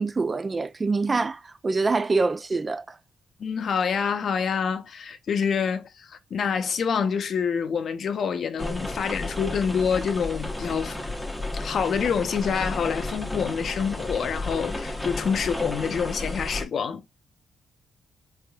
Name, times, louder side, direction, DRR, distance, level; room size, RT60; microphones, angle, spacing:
voice 1, 0.0-3.0, right 3 dB, 35° right, 0.3 m, -25 dB
voice 2, 3.4-11.0 11.5-17.0, left 6 dB, 60° left, 0.6 m, -27 dB
sound 1, 8.6-16.7, left 2 dB, 5° left, 0.8 m, -32 dB
3.3 x 3.1 x 2.3 m
supercardioid pair, 60°, 0 cm